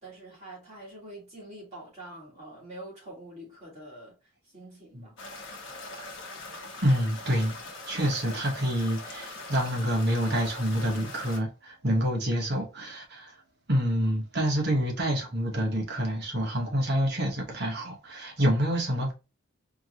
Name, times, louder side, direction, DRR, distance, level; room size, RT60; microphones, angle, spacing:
voice 1, 0.0-4.1 4.5-5.2, right 1 dB, 35° right, 2.5 m, -45 dB
sound 1, 5.2-11.4, left 2 dB, 60° left, 1.2 m, -42 dB
voice 2, 6.8-7.5 7.9-13.3 13.7-19.1, equal, 50° right, 1.2 m, -27 dB
4.5 x 2.9 x 3.1 m
head